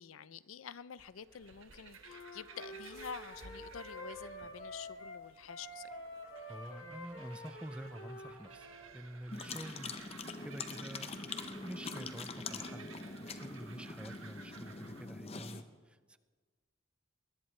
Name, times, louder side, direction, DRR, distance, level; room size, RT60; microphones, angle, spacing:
voice 1, 0.0-5.9 9.6-9.8, left 7 dB, 90° left, 0.5 m, -48 dB
sound 1, 1.0-15.1, right 5 dB, 80° right, 1.4 m, -56 dB
Wind instrument woodwind instrument, 2.0-8.9, left 1 dB, 70° left, 2.0 m, -48 dB
voice 2, 6.4-8.7 8.9-10.0 10.4-12.9 13.2-16.2, right 1 dB, 5° right, 0.4 m, -48 dB
sound 2, 9.3-15.6, left 4 dB, 30° left, 0.7 m, -44 dB
21.5 x 18.5 x 3.2 m
head